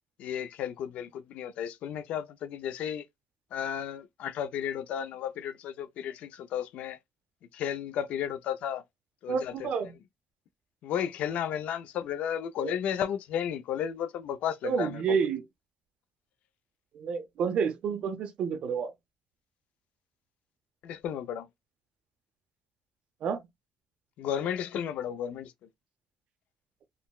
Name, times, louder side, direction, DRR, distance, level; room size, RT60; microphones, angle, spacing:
voice 1, 0.2-3.0 3.5-7.0 7.5-8.8 9.2-9.7 10.8-15.2 20.8-21.5 24.2-25.5, left 9 dB, 65° left, 0.4 m, -33 dB
voice 2, 9.3-9.9 12.6-12.8 14.6-15.4 16.9-18.9 23.2-23.4, right 6 dB, 50° right, 0.5 m, -29 dB
3.8 x 2.1 x 2.3 m
cardioid pair, 170°, 2 cm